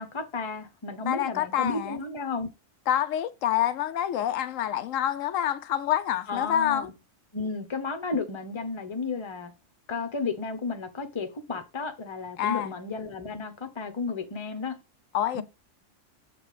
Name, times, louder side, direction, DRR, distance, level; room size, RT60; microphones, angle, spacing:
voice 1, 0.0-2.5 6.3-6.9 7.3-9.5 9.9-14.8 15.3-15.4, left 4 dB, 25° left, 0.8 m, -33 dB
voice 2, 1.0-2.0 2.9-6.9 12.4-12.7 15.1-15.4, left 11 dB, 80° left, 0.9 m, -27 dB
7.3 x 3.3 x 4.9 m
omnidirectional pair, 1.3 m